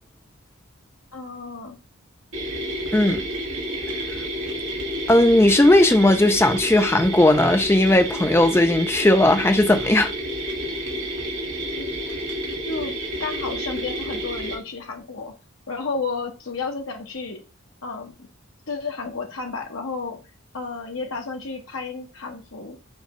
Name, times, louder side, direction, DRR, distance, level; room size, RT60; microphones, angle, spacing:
voice 1, 1.1-1.8 11.8-11.9 12.7-12.9 13.2-15.3 15.7-17.4 17.8-18.3 18.7-20.2 20.5-22.8, left 4 dB, 75° left, 1.1 m, -32 dB
sound 1, 2.3-14.6, equal, 65° right, 1.6 m, -30 dB
voice 2, 5.1-10.1, left 1 dB, 10° left, 0.4 m, -17 dB
6.4 x 2.3 x 3.0 m
head